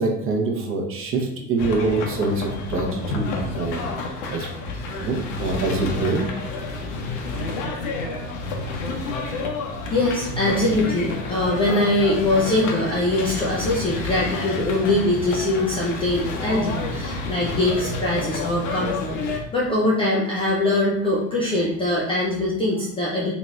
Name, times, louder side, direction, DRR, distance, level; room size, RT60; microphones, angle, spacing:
voice 1, 0.0-4.5 5.0-6.3, right 3 dB, 30° right, 1 dB, 0.8 m, -25 dB
sound 1, 1.6-19.4, left 3 dB, 55° left, 0.8 m, -29 dB
voice 2, 8.8-9.6 9.9-23.3, left 2 dB, 10° left, -5 dB, 0.4 m, -23 dB
4.0 x 2.9 x 2.3 m, 0.78 s
figure-of-eight pair, 75°, 47 cm